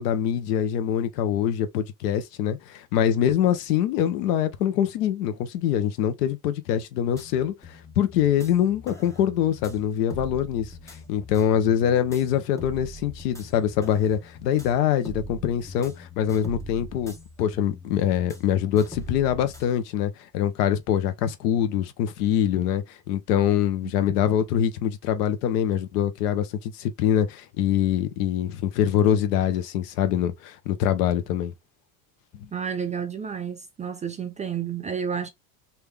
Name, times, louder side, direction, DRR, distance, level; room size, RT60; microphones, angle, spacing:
voice 1, 0.0-31.5 32.3-32.5, left 10 dB, 80° left, 1.0 m, -24 dB
sound 1, 7.1-19.7, left 1 dB, 5° left, 1.0 m, -42 dB
voice 2, 32.5-35.3, right 7 dB, 20° right, 0.3 m, -30 dB
3.6 x 2.8 x 3.3 m
supercardioid pair, 110°, 46 cm